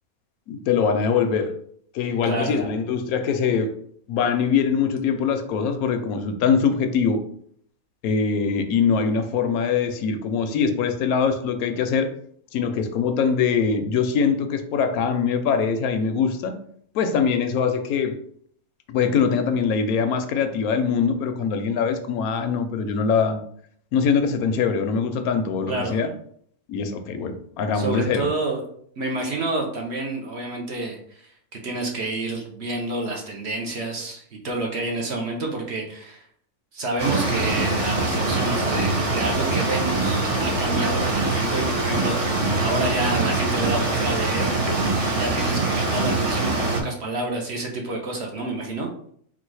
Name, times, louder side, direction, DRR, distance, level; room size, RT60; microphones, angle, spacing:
voice 1, 0.5-1.6 1.9-3.8 4.1-7.2 8.0-12.1 12.5-16.5 16.9-18.2 18.9-23.4 23.9-26.1 26.7-28.3, left 6 dB, 80° left, 8 dB, 1.0 m, -23 dB
voice 2, 2.2-2.6 25.7-26.0 27.7-28.6 29.0-36.3 36.7-44.5 45.0-48.9, right 2 dB, 55° right, 1 dB, 0.9 m, -29 dB
sound 1, 37.0-46.8, right 2 dB, 35° right, 0.6 m, -23 dB
4.0 x 2.4 x 4.6 m, 0.64 s
omnidirectional pair, 1.5 m